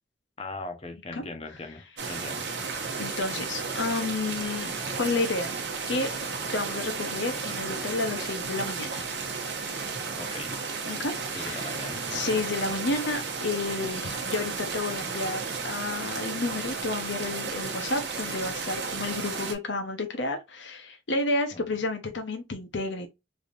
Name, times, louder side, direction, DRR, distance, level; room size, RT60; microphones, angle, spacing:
voice 1, 0.4-2.5 10.2-10.6 11.3-12.4 21.5-21.6, left 2 dB, 30° left, 0.7 m, -40 dB
sound 1, 2.0-19.5, right 4 dB, 60° right, 0.9 m, -33 dB
voice 2, 3.0-5.5 5.9-6.1 6.5-9.0 10.9-11.7 12.1-23.1, left 2 dB, 70° left, 0.7 m, -31 dB
3.4 x 2.7 x 2.4 m
head